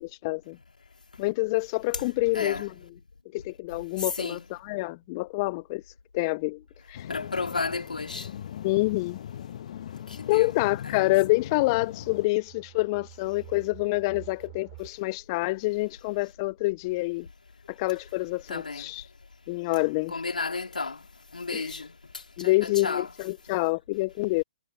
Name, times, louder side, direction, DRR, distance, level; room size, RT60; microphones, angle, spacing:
voice 1, 0.0-0.6 1.2-2.7 3.3-5.8 6.1-6.6 6.9-7.1 8.6-9.2 10.3-17.3 17.7-19.1 19.5-20.1 21.5-21.7 22.4-24.4, left 23 dB, 35° left, 0.3 m, -27 dB
voice 2, 2.3-2.7 4.0-4.5 7.1-8.3 10.1-10.5 10.8-11.0 18.5-18.9 20.1-21.1 21.3-23.1, left 4 dB, 90° left, 3.3 m, -33 dB
sound 1, 6.7-6.8 7.1-7.2 7.7-7.8 8.7-14.9, right 37 dB, 35° right, 3.3 m, -51 dB
sound 2, 6.9-12.3, left 10 dB, 55° left, 1.1 m, -40 dB
hypercardioid pair, 135°, 4 cm